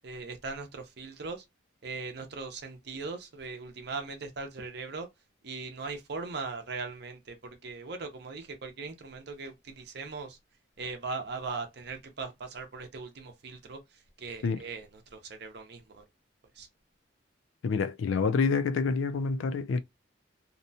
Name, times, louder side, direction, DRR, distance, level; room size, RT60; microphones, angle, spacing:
voice 1, 0.0-1.4 1.8-5.1 5.4-10.4 10.8-16.0 16.5-16.7, right 4 dB, 55° right, 0.6 m, -39 dB
voice 2, 17.6-19.8, left 4 dB, 75° left, 0.4 m, -27 dB
2.7 x 2.1 x 2.6 m
head